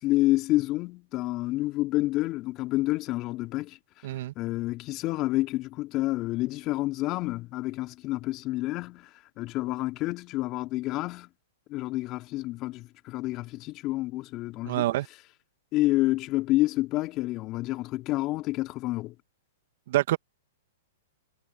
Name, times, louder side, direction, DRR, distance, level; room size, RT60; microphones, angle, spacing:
voice 1, 0.0-3.8 4.3-9.1 9.4-11.3 11.7-14.9 15.7-19.1, left 18 dB, 35° left, 3.4 m, -29 dB
voice 2, 4.0-4.3 14.6-15.1 19.9-20.2, right 15 dB, 60° right, 2.2 m, -26 dB
hypercardioid pair, 115°, 0 cm